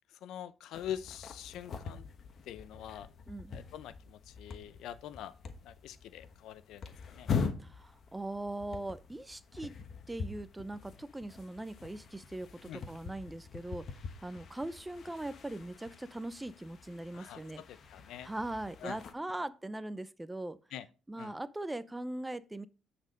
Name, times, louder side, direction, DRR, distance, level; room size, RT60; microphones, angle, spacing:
voice 1, 0.1-2.1 2.5-3.1 3.5-5.3 5.6-7.3 12.6-12.8 17.1-18.3 18.8-19.0 20.7-20.9 21.2-21.4, left 10 dB, 85° left, 0.6 m, -44 dB
sound 1, 0.7-19.1, left 5 dB, 55° left, 1.2 m, -43 dB
voice 2, 7.6-9.7 10.1-13.9 14.2-17.6 18.2-20.6 21.1-22.7, right 1 dB, 10° right, 0.6 m, -40 dB
9.4 x 4.4 x 5.1 m
cardioid pair, 90°, 0 cm